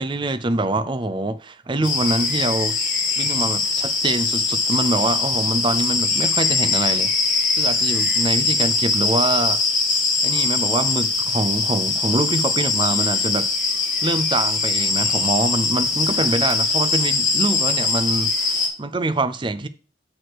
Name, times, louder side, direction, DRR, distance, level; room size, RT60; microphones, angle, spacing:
voice 1, 0.0-2.8 3.2-9.6 10.2-13.5 14.0-19.7, right 2 dB, 25° right, 0.5 m, -24 dB
sound 1, 1.8-18.7, left 4 dB, 45° left, 1.7 m, -22 dB
6.4 x 4.6 x 6.4 m
head